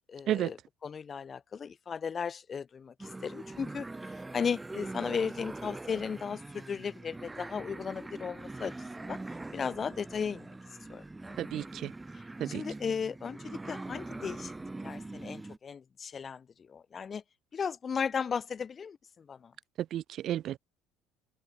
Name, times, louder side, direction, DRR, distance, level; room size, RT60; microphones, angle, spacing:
voice 1, 0.1-3.9 4.3-9.2 9.5-10.5 10.9-11.7 12.4-14.5 14.8-17.2 17.5-19.5, left 6 dB, 35° left, 6.4 m, -36 dB
sound 1, 3.0-15.6, right 2 dB, 15° right, 5.5 m, -43 dB
voice 2, 11.4-11.9 12.4-12.6 19.9-20.6, right 12 dB, 55° right, 1.0 m, -32 dB
supercardioid pair, 95°, 0 cm